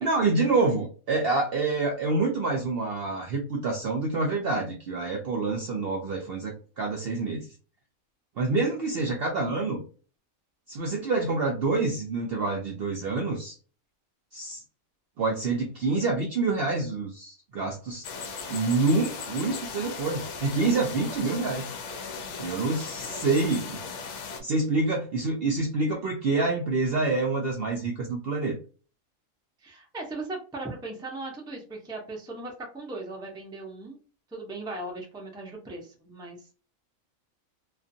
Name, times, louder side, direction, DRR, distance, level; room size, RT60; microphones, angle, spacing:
voice 1, 0.0-7.5 8.4-9.8 10.7-13.6 14.3-14.6 15.2-18.0 18.5-21.7 22.4-23.8 24.4-28.6, right 3 dB, 65° right, 1 dB, 0.6 m, -27 dB
sound 1, 18.0-24.4, left 5 dB, 65° left, 0.9 m, -37 dB
voice 2, 29.6-34.0 34.3-36.5, right 2 dB, 5° right, -1 dB, 0.4 m, -38 dB
2.5 x 2.5 x 2.6 m, 0.37 s
omnidirectional pair, 1.4 m